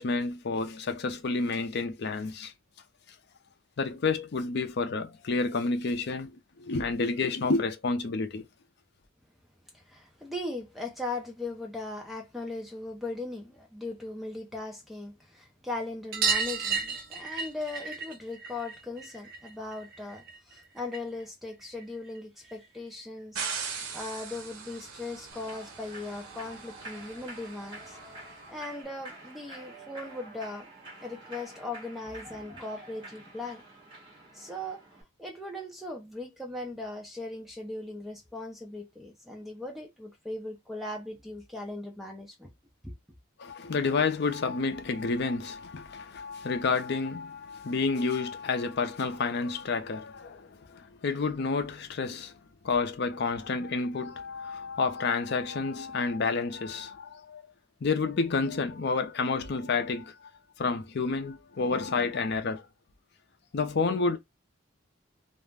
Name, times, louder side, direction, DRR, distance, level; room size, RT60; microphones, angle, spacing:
voice 1, 0.0-2.5 3.8-8.5 43.4-52.4 52.6-57.4 57.8-60.1 60.6-62.7 63.5-64.2, left 4 dB, 55° left, 0.5 m, -30 dB
voice 2, 9.7-28.0 28.5-30.7 31.0-33.6 34.3-34.8 35.2-42.5 42.8-42.9, left 2 dB, ahead, 0.5 m, -39 dB
sound 1, 16.1-21.2 21.5-22.7 24.0-24.1 24.3-24.4 24.7-24.8 26.1-26.2 26.5-26.6 26.9-27.0 28.3-28.4 29.1-29.2, right 5 dB, 45° right, 0.6 m, -34 dB
sound 2, 23.3-28.5, right 6 dB, 85° right, 0.7 m, -41 dB
Human voice / Clapping / Cheering, 25.3-35.0, right 1 dB, 25° right, 1.2 m, -48 dB
2.4 x 2.1 x 3.3 m
head